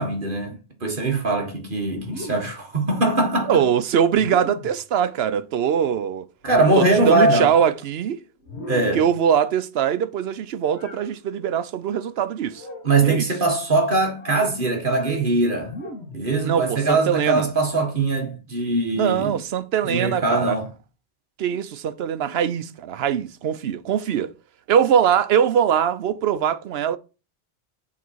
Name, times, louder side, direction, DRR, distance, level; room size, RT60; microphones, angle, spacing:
voice 1, 0.0-3.7 6.4-7.5 8.7-9.1 12.8-15.7 16.1-19.4 19.8-20.7, right 2 dB, 50° right, 1.8 m, -21 dB
sound 1, 2.0-2.7 4.1-4.8 6.4-7.1 8.4-9.1 10.7-11.1 12.5-13.0 14.1-14.5 15.6-16.3, left 1 dB, 80° left, 1.7 m, -37 dB
voice 2, 3.5-6.3 6.8-8.2 8.9-12.7 13.0-13.3 16.4-17.5 19.0-20.6 21.4-24.3 24.7-27.0, right 8 dB, 70° right, 0.9 m, -22 dB
8.5 x 4.1 x 4.6 m
omnidirectional pair, 1.1 m